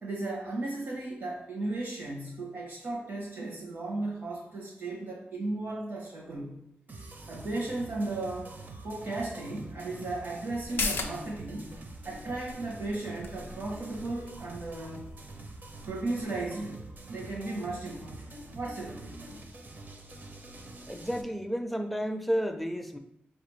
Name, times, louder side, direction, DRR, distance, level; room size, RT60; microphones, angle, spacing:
voice 1, 0.0-6.6 7.3-8.6 8.8-11.7 12.0-15.0 15.9-16.8 17.1-19.4, right 2 dB, 75° right, -3 dB, 0.9 m, -35 dB
sound 1, 6.9-21.2, right 2 dB, 50° right, 0.5 m, -46 dB
sound 2, 10.6-17.7 18.1-18.2, left 4 dB, 75° left, 0.4 m, -40 dB
voice 2, 20.9-23.0, equal, ahead, 5 dB, 0.4 m, -31 dB
4.5 x 2.5 x 3.1 m, 0.77 s
cardioid pair, 70°, 4 cm